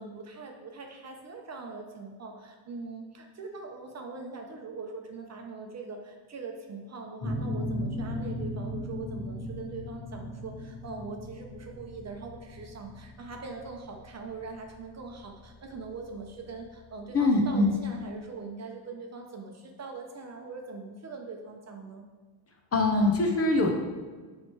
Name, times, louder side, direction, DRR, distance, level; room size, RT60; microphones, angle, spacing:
voice 1, 0.0-22.0, right 4 dB, 35° right, 3 dB, 0.7 m, -42 dB
sound 1, 7.2-16.6, left 1 dB, 45° left, 1.4 m, -37 dB
voice 2, 17.1-17.8 22.7-23.7, left 2 dB, 30° left, 2 dB, 0.7 m, -23 dB
8.7 x 3.3 x 4.5 m, 1.4 s
cardioid pair, 150°, 48 cm